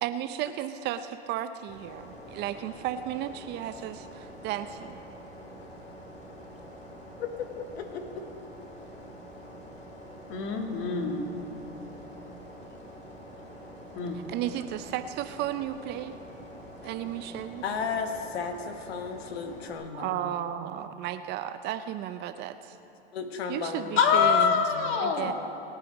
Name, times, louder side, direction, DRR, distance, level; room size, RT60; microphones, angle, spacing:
voice 1, 0.0-5.0 14.1-16.2 16.8-17.6 19.9-22.8 23.5-24.7 25.0-25.3, right 12 dB, 35° right, 11 dB, 0.5 m, -34 dB
battery noise, 1.7-19.7, equal, 25° left, 3.1 m, -46 dB
voice 2, 7.2-8.1 17.6-20.3 23.1-24.0 24.7-25.0 25.2-25.3, left 5 dB, 75° left, 7 dB, 1.3 m, -34 dB
voice 3, 10.3-11.3 13.9-14.2 24.0-25.3, left 6 dB, 40° left, 3 dB, 2.1 m, -25 dB
22.0 x 9.0 x 5.2 m, 2.9 s
hypercardioid pair, 115°, 32 cm